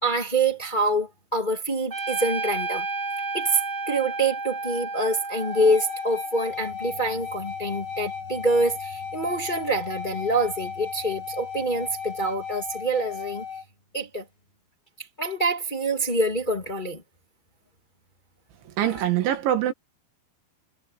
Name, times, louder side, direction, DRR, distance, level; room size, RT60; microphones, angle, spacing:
voice 1, 0.0-2.9 3.3-3.6 3.9-13.4 13.9-14.2 15.2-17.0 18.8-19.0, right 2 dB, 15° left, 1.9 m, -26 dB
Trumpet, 1.9-6.6, right 3 dB, 40° right, 1.0 m, -32 dB
sound 1, 5.4-13.6, left 6 dB, 75° left, 9.1 m, -35 dB
voice 2, 18.8-19.7, right 11 dB, 85° right, 4.4 m, -23 dB
omnidirectional pair, 5.2 m